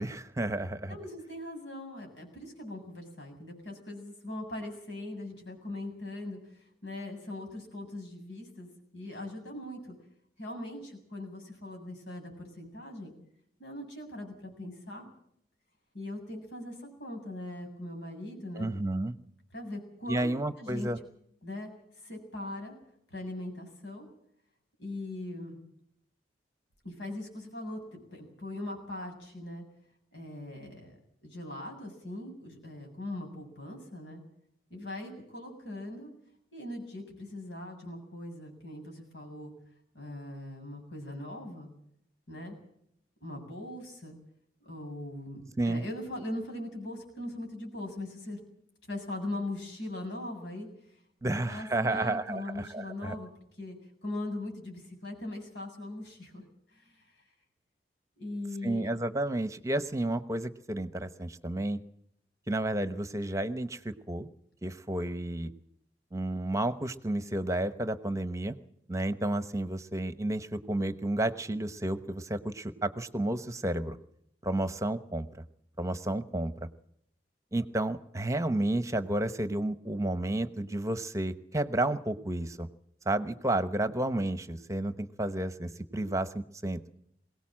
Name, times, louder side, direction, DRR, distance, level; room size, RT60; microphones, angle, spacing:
voice 1, 0.0-1.0 18.6-19.1 20.1-21.0 45.6-45.8 51.2-53.2 58.6-61.8 62.5-64.3 64.6-65.5 66.1-68.5 68.9-74.0 74.4-75.3 75.8-76.7 77.5-82.7 83.1-86.8, right 1 dB, 15° right, 12 dB, 1.0 m, -31 dB
voice 2, 0.9-9.9 10.4-13.1 13.6-15.1 15.9-18.7 19.5-20.3 20.6-20.9 21.4-21.7 22.0-22.8 23.1-24.1 24.8-25.6 26.8-29.6 30.1-30.9 31.2-34.2 34.7-36.1 36.5-39.5 39.9-41.7 42.3-42.6 43.2-44.2 44.6-48.4 48.9-50.7 51.2-53.3 53.6-53.8 54.0-56.4 56.7-57.1 58.2-58.9, left 1 dB, 90° left, 2 dB, 7.5 m, -40 dB
22.5 x 18.0 x 7.6 m, 0.72 s
head